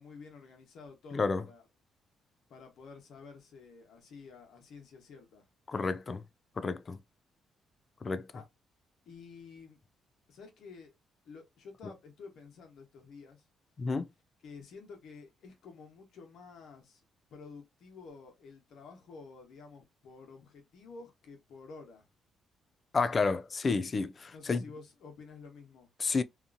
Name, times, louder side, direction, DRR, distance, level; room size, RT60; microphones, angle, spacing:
voice 1, 0.0-1.7 2.5-5.5 8.3-8.4 9.1-9.8 10.3-10.9 11.2-13.5 14.4-17.0 17.3-22.1 24.3-25.9, left 4 dB, 70° left, 1.0 m, -51 dB
voice 2, 1.1-1.4 5.7-6.2 6.6-7.0 8.0-8.3 13.8-14.1 22.9-24.6 26.0-26.2, left 4 dB, 35° left, 0.3 m, -30 dB
2.7 x 2.4 x 2.5 m
cardioid pair, 90°, 0 cm